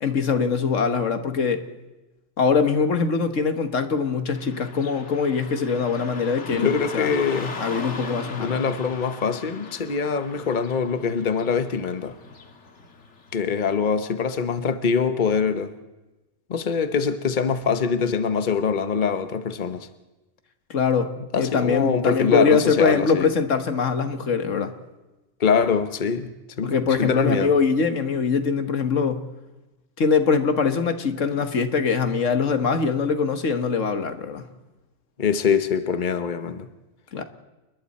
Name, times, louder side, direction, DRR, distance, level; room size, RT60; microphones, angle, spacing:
voice 1, 0.0-1.6 2.4-7.1 7.6-8.5 20.7-24.7 26.6-29.3 30.0-34.5 37.1-37.2, left 5 dB, 85° left, 1.7 m, -22 dB
Car passing by / Traffic noise roadway noise, 4.4-13.4, left 4 dB, 70° left, 1.9 m, -39 dB
voice 2, 6.5-7.5 8.4-12.2 13.3-15.7 16.5-19.9 21.3-23.3 25.4-27.5 35.2-36.7, left 6 dB, 40° left, 1.1 m, -24 dB
29.5 x 21.0 x 4.3 m
omnidirectional pair, 1.3 m